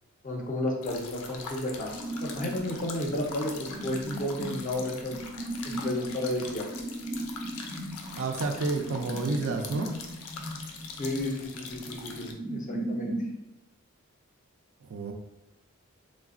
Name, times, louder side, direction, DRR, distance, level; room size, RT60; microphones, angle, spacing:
voice 1, 0.2-1.9 2.2-5.1 5.6-6.7 11.0-13.1, left 1 dB, 35° left, -1 dB, 0.5 m, -32 dB
sound 1, 0.8-12.3, left 4 dB, 85° left, 0.4 m, -43 dB
sound 2, 1.9-13.4, right 1 dB, 90° right, 1.0 m, -38 dB
voice 2, 8.1-9.9 14.8-15.1, right 3 dB, 60° right, 3 dB, 0.4 m, -30 dB
3.2 x 2.0 x 2.4 m, 0.98 s
head